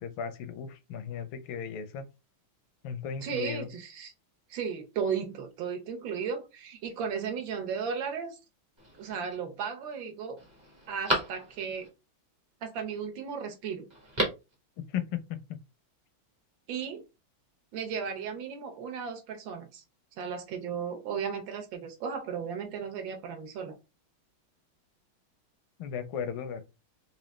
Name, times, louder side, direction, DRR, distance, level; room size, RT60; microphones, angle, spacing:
voice 1, 0.0-2.0 2.8-3.7 14.9-15.6 25.8-26.6, left 7 dB, 85° left, 1.4 m, -36 dB
voice 2, 3.2-4.1 4.5-8.4 9.0-10.4 10.9-11.9 12.6-13.9 16.7-17.0 17.7-19.8 20.2-23.7, right 6 dB, 70° right, 1.5 m, -35 dB
Telephone, 8.8-9.4 9.9-10.0 10.4-11.9 13.9-14.5 14.8-14.9, right 1 dB, 20° right, 0.7 m, -33 dB
4.1 x 2.6 x 3.1 m
omnidirectional pair, 2.3 m